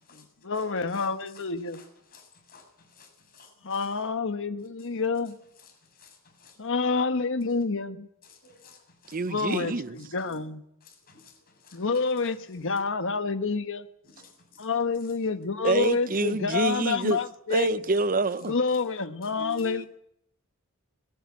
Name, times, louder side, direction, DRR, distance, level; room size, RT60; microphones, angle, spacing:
voice 1, 0.4-1.8 3.6-5.3 6.6-8.1 9.3-10.6 11.7-13.8 14.6-17.8 18.4-19.9, left 4 dB, 60° left, 1.2 m, -28 dB
voice 2, 2.1-2.7 3.0-3.8 6.0-6.6 8.3-9.2 10.8-11.3 11.6-11.8 14.1-14.7, left 5 dB, 45° left, 6.9 m, -55 dB
voice 3, 9.1-10.0 15.6-17.2 17.5-18.6 19.4-19.9, right 3 dB, 40° right, 0.7 m, -27 dB
20.0 x 14.5 x 9.7 m
head